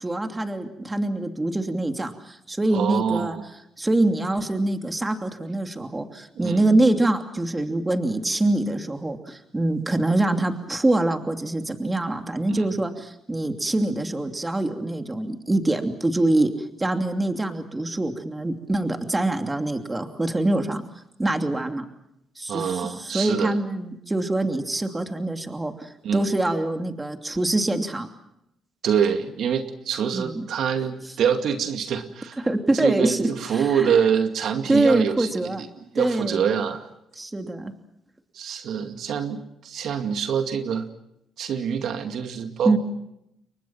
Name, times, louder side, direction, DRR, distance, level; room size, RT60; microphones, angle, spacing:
voice 1, 0.0-3.4 3.8-16.5 16.8-20.8 21.2-21.9 22.4-28.1 30.1-30.5 32.4-33.9 34.7-35.6 35.9-36.4 37.2-37.7 42.6-42.8, right 2 dB, 15° right, 5 dB, 2.8 m, -24 dB
voice 2, 2.7-3.5 6.3-6.6 12.5-12.8 22.5-23.6 26.0-26.3 28.8-32.5 32.7-35.7 35.9-36.9 38.3-40.9 41.4-42.8, right 7 dB, 70° right, 6 dB, 2.2 m, -25 dB
29.5 x 23.5 x 5.9 m, 0.81 s
cardioid pair, 90°, 0 cm